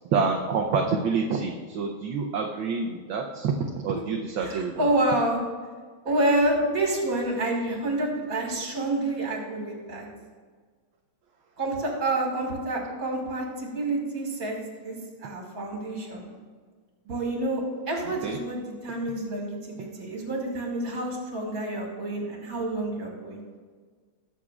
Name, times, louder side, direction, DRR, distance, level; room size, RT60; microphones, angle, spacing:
voice 1, 0.1-3.5 3.8-4.9 18.2-18.4, right 5 dB, 70° right, 1 dB, 1.5 m, -27 dB
voice 2, 4.4-5.4 6.0-10.1 11.6-14.6 14.8-15.0 15.2-16.3 17.0-23.4, right 1 dB, 45° right, -1 dB, 2.4 m, -28 dB
20.0 x 7.4 x 2.4 m, 1.6 s
omnidirectional pair, 2.4 m